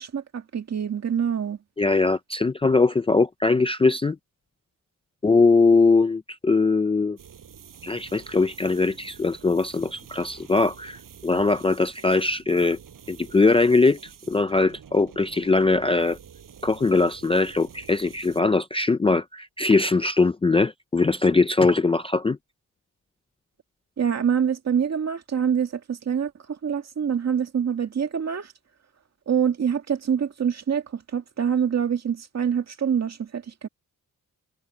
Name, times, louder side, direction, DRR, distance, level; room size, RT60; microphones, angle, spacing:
voice 1, 0.0-1.6 24.0-26.3 26.6-28.5 29.3-33.7, right 7 dB, 50° right, 2.1 m, -25 dB
voice 2, 1.8-4.2 5.2-7.2 7.8-12.8 13.1-14.0 14.3-16.2 16.6-22.4, left 3 dB, 15° left, 0.4 m, -21 dB
sound 1, 7.2-18.4, right 8 dB, 70° right, 7.4 m, -48 dB
wide cardioid pair, 180°, 34 cm